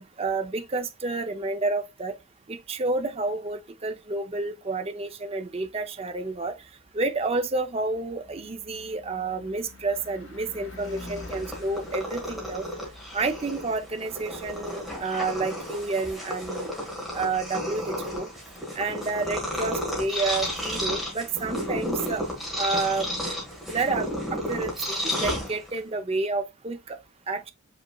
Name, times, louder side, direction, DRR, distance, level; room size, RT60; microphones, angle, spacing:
voice 1, 0.0-2.2 2.5-6.5 6.9-12.6 13.1-16.7 17.1-18.3 18.8-22.2 22.6-23.1 23.7-27.0 27.3-27.5, right 3 dB, 30° right, 0.5 m, -30 dB
Car passing by / Truck / Engine, 6.9-17.1, left 2 dB, 75° left, 2.3 m, -48 dB
Purr, 10.8-25.9, equal, ahead, 1.5 m, -32 dB
5.2 x 4.2 x 2.3 m
head